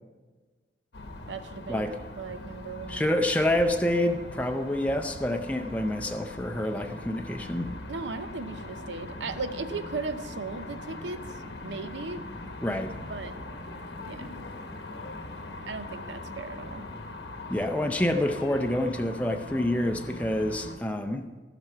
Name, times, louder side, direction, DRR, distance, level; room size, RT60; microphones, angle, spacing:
sound 1, 0.9-20.8, left 2 dB, 75° left, 1.0 m, -41 dB
voice 1, 1.3-3.1 7.9-12.2 13.1-13.4 14.1-14.5 15.7-16.8, right 3 dB, 80° right, 10 dB, 0.7 m, -37 dB
voice 2, 2.9-7.7 12.6-12.9 17.5-21.3, left 1 dB, 10° left, 5 dB, 0.4 m, -27 dB
15.5 x 5.9 x 5.7 m, 1.3 s
head